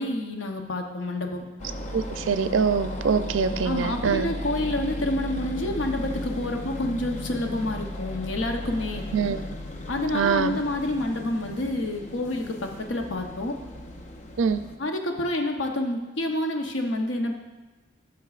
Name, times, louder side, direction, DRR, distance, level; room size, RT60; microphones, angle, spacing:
voice 1, 0.0-1.4 3.6-9.0 9.9-13.5 14.8-17.4, left 1 dB, 75° left, 4 dB, 0.8 m, -28 dB
sound 1, 1.6-14.8, left 1 dB, 40° left, 0.5 m, -36 dB
voice 2, 1.9-4.3 9.1-9.4 10.1-10.5 14.4-14.7, right 6 dB, 90° right, 11 dB, 0.4 m, -24 dB
10.5 x 6.1 x 2.4 m, 1.2 s
head